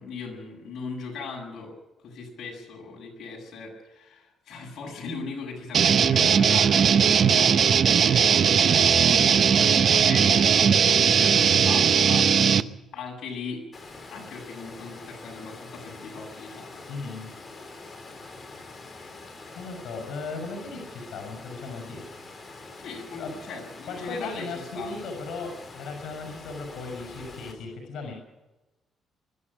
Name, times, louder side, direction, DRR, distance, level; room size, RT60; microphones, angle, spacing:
voice 1, 0.0-1.7 2.0-8.8 10.0-12.3 12.9-13.6 14.1-16.8 22.8-24.5 24.7-24.9, left 4 dB, 60° left, 0 dB, 7.7 m, -38 dB
sound 1, 5.7-12.6, right 7 dB, 45° right, 0.7 m, -19 dB
voice 2, 9.2-10.1 16.9-17.3 19.5-22.0 23.2-23.3 23.8-28.1, left 3 dB, 80° left, 3 dB, 6.2 m, -37 dB
Water, 13.7-27.5, left 3 dB, 25° left, 4.0 m, -45 dB
23.0 x 12.5 x 9.9 m, 1.1 s
cardioid pair, 150°, 0 cm